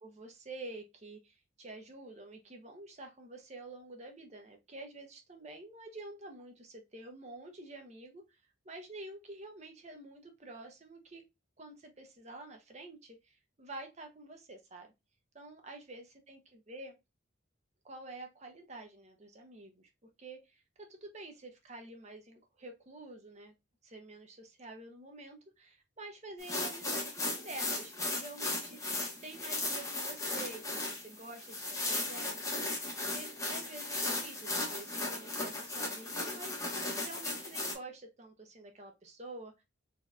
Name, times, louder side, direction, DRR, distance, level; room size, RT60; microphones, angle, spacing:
voice 1, 0.0-8.2 8.6-11.2 11.6-14.9 15.3-17.0 17.8-19.9 20.2-23.5 23.8-39.6, right 2 dB, 35° right, 4 dB, 0.8 m, -49 dB
sound 1, 26.4-37.7, left 2 dB, 15° left, 1.2 m, -36 dB
4.1 x 2.9 x 2.3 m, 0.22 s
head